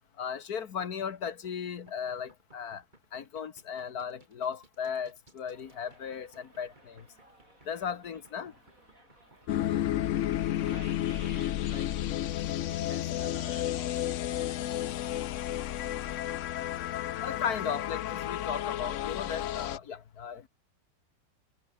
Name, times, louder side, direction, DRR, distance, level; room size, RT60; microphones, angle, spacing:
voice 1, 0.2-2.8 3.1-7.0 7.7-8.5 17.2-20.5, left 7 dB, 55° left, 1.7 m, -36 dB
sound 1, 0.6-14.0, right 2 dB, 25° right, 3.6 m, -61 dB
Subway metro underground, 5.5-15.8, right 2 dB, 45° right, 7.9 m, -61 dB
sound 2, 9.5-19.8, left 12 dB, 80° left, 0.6 m, -32 dB
voice 2, 10.1-12.1 12.9-14.6 16.7-18.0, right 4 dB, 75° right, 4.6 m, -53 dB
omnidirectional pair, 2.0 m